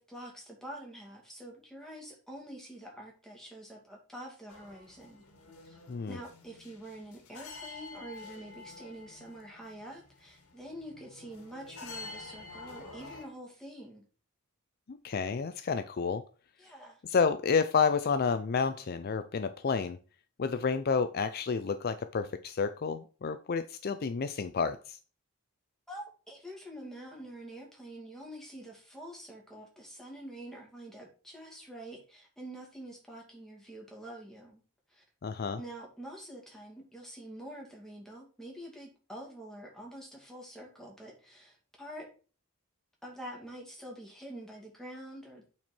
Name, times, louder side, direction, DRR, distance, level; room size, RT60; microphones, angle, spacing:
voice 1, 0.0-5.2 5.6-5.8 6.1-14.0 16.6-17.0 25.9-34.6 34.9-35.0 35.6-42.1 43.0-45.4, right 1 dB, ahead, -1 dB, 2.4 m, -46 dB
sound 1, 4.5-13.3, left 3 dB, 90° left, 1.8 m, -49 dB
voice 2, 14.9-16.2 17.1-20.0 20.4-25.0 35.2-35.6, left 5 dB, 45° left, 11 dB, 0.4 m, -30 dB
8.7 x 4.4 x 4.5 m, 0.37 s
head